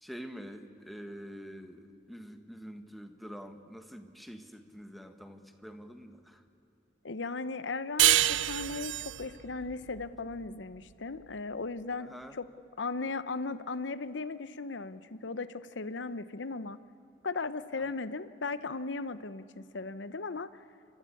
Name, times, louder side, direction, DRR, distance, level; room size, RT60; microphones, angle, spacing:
voice 1, 0.0-6.4 12.0-12.4 17.8-17.9, equal, ahead, 6 dB, 1.4 m, -46 dB
voice 2, 7.0-12.4 12.8-16.8 17.2-20.5, left 3 dB, 70° left, 14 dB, 0.9 m, -37 dB
sound 1, 8.0-11.2, right 13 dB, 75° right, 0.5 m, -28 dB
29.5 x 14.5 x 8.5 m, 2.7 s
head